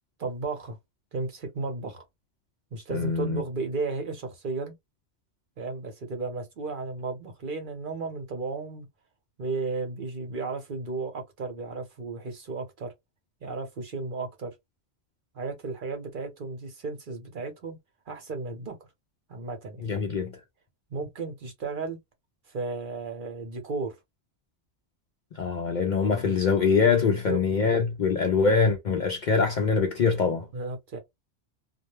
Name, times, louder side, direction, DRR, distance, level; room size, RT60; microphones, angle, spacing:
voice 1, 0.2-0.8 1.1-2.0 2.7-4.7 5.6-8.9 9.4-12.9 13.4-14.5 15.3-17.8 18.1-18.8 19.3-19.8 20.9-22.0 22.5-23.9 26.1-26.4 27.0-27.4 30.5-31.0, right 3 dB, 50° right, 0.9 m, -34 dB
voice 2, 2.9-3.4 19.8-20.4 25.3-30.5, left 5 dB, 60° left, 0.5 m, -24 dB
2.3 x 2.1 x 3.0 m
omnidirectional pair, 1.2 m